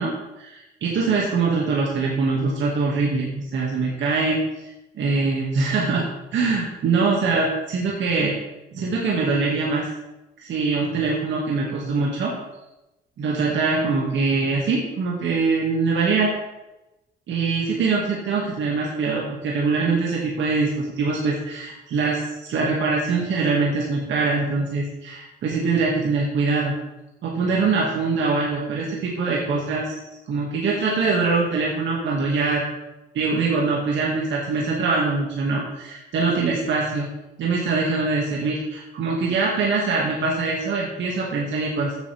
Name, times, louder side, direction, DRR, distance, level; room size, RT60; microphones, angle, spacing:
voice 1, 0.0-4.4 5.0-6.0 6.3-8.4 8.7-9.9 10.4-12.3 13.2-16.3 17.3-26.7 27.2-30.0 30.3-32.6 33.1-37.1 37.4-42.0, right 4 dB, 70° right, -3 dB, 2.2 m, -23 dB
13.5 x 8.5 x 3.5 m, 0.97 s
cardioid pair, 90°, 20 cm